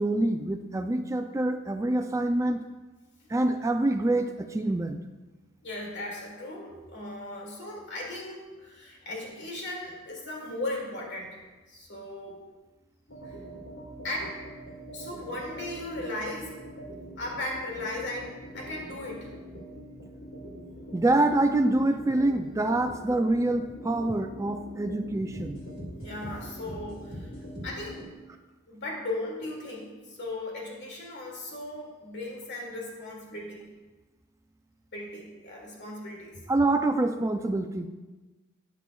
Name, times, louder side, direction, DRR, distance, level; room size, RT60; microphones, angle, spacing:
voice 1, 0.0-2.6 3.3-5.0 20.9-25.6 36.5-37.9, right 2 dB, 15° right, 7 dB, 0.3 m, -26 dB
voice 2, 5.6-11.4 11.7-12.4 13.2-13.3 14.0-14.4 14.9-16.6 17.2-19.3 26.0-27.3 27.6-28.0 28.7-33.7 34.9-36.4, left 1 dB, 55° left, -2 dB, 2.3 m, -37 dB
sound 1, 13.1-28.0, equal, 80° left, 2.3 m, -43 dB
12.5 x 9.4 x 2.3 m, 1.2 s
head